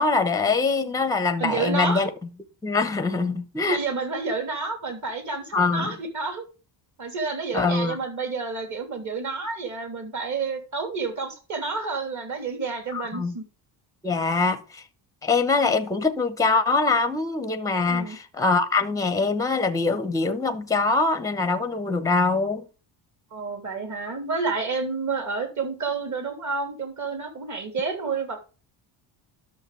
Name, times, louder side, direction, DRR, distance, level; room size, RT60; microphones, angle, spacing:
voice 1, 0.0-2.1 2.6-3.8 5.5-5.9 7.5-8.0 12.9-13.3 14.0-14.8 15.2-22.6, left 3 dB, 5° left, 0.9 m, -23 dB
voice 2, 1.4-2.1 3.7-6.4 7.0-13.4 17.9-18.2 23.3-28.5, right 4 dB, 35° right, 3.2 m, -30 dB
11.0 x 6.8 x 3.4 m
cardioid pair, 150°, 47 cm